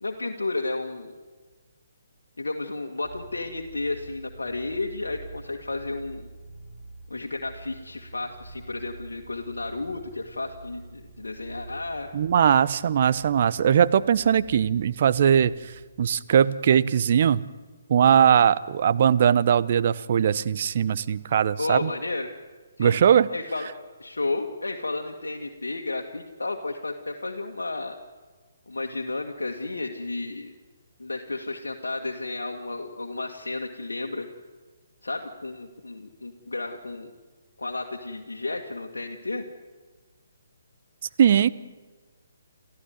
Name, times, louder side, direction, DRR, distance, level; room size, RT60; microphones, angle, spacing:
voice 1, 0.0-1.1 2.4-6.3 7.1-12.1 21.6-22.3 22.8-23.0 23.3-23.7 24.0-28.0 28.7-30.5 31.0-34.3 35.0-37.1 37.6-39.5, left 2 dB, 75° left, 2 dB, 1.9 m, -32 dB
sound 1, 3.0-15.8, right 3 dB, 25° right, 5.8 m, -46 dB
voice 2, 12.1-15.7 16.0-17.4 17.9-21.9 22.8-23.3 41.2-41.5, right 8 dB, 45° right, 16 dB, 0.9 m, -20 dB
29.0 x 15.0 x 9.5 m, 1.4 s
figure-of-eight pair, 135°, 0 cm